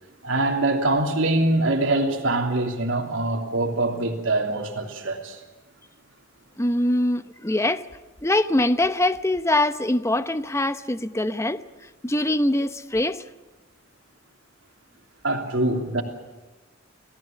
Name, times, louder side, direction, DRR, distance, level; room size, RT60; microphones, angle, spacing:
voice 1, 0.2-5.4 15.2-16.0, right 2 dB, 75° right, 3.1 m, -24 dB
voice 2, 6.6-7.9 8.2-11.6 12.0-13.2, left 1 dB, 15° left, 0.8 m, -23 dB
27.5 x 17.5 x 7.5 m
head